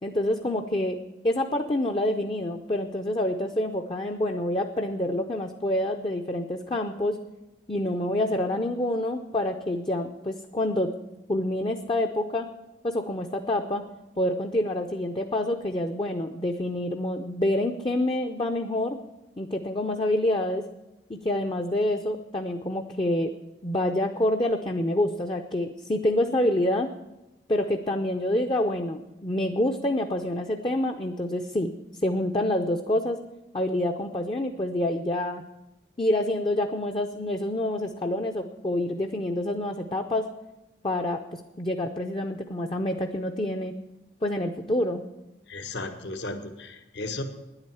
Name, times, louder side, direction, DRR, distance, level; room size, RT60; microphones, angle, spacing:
voice 1, 0.0-1.0 1.2-7.2 7.7-10.9 11.3-12.5 12.8-13.8 14.2-19.0 19.4-20.6 21.1-23.3 23.6-26.9 27.5-31.7 32.0-33.2 33.5-35.4 36.0-40.3 40.8-41.2 41.6-43.7 44.2-45.0, left 1 dB, 25° left, 4 dB, 0.6 m, -27 dB
voice 2, 45.5-47.2, left 2 dB, 65° left, 7 dB, 1.3 m, -35 dB
10.5 x 8.9 x 9.1 m, 1.0 s
head